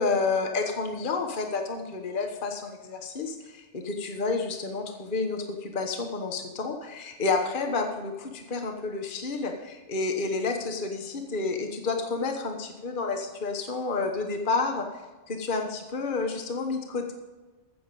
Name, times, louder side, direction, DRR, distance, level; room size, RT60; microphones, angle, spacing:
voice 1, 0.0-14.9 15.3-17.1, left 4 dB, 45° left, 4 dB, 1.3 m, -30 dB
15.5 x 7.1 x 5.3 m, 1.2 s
omnidirectional pair, 1.3 m